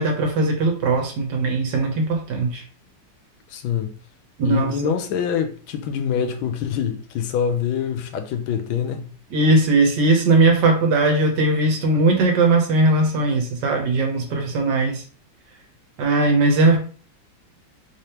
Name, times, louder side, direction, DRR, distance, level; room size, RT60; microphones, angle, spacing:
voice 1, 0.0-2.6 4.4-4.9 9.3-15.0 16.0-16.8, right 2 dB, 65° right, 1.4 m, -19 dB
voice 2, 3.5-4.0 4.4-9.0, left 8 dB, 80° left, 1.4 m, -25 dB
3.5 x 3.3 x 2.9 m
omnidirectional pair, 2.1 m